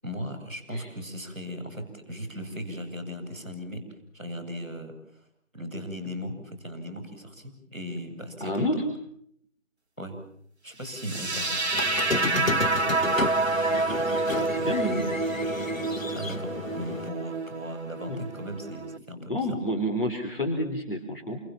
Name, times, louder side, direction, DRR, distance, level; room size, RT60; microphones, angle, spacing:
voice 1, 0.0-5.2 5.5-8.8 10.0-10.2 10.6-11.6 12.0-12.6 16.1-19.6, equal, 10° left, -12 dB, 6.8 m, -37 dB
voice 2, 8.4-8.8 14.4-15.1 18.1-18.2 19.3-21.4, equal, 45° left, 1 dB, 4.3 m, -29 dB
sound 1, 10.9-19.0, right 3 dB, 55° right, 1.1 m, -28 dB
Squeak, 11.7-17.1, left 3 dB, 90° left, 1.6 m, -32 dB
29.5 x 27.5 x 7.3 m, 0.70 s
figure-of-eight pair, 180°, 39 cm